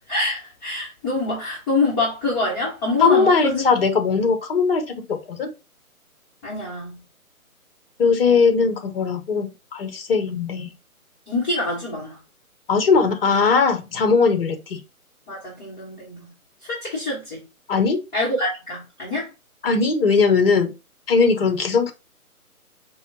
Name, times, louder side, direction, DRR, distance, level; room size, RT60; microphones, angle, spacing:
voice 1, 0.1-3.7 6.4-7.0 11.3-12.2 15.3-16.3 16.7-17.4 18.1-19.3, left 2 dB, 15° left, 1.3 m, -25 dB
voice 2, 3.0-5.5 8.0-10.7 12.7-14.8 17.7-18.0 19.6-20.7 21.1-21.9, left 5 dB, 40° left, 0.9 m, -19 dB
5.5 x 2.3 x 4.1 m
figure-of-eight pair, 145°, 44 cm